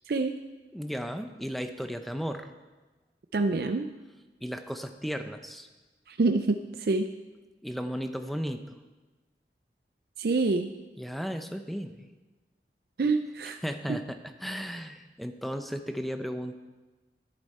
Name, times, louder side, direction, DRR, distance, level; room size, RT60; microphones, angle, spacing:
voice 1, 0.7-2.5 4.4-5.7 7.6-8.8 11.0-12.1 13.6-16.6, equal, ahead, 7 dB, 0.6 m, -35 dB
voice 2, 3.3-3.9 6.1-7.1 10.2-10.7 13.0-13.6 13.9-14.0, right 3 dB, 60° right, 8 dB, 0.4 m, -26 dB
11.0 x 11.0 x 4.3 m, 1.2 s
head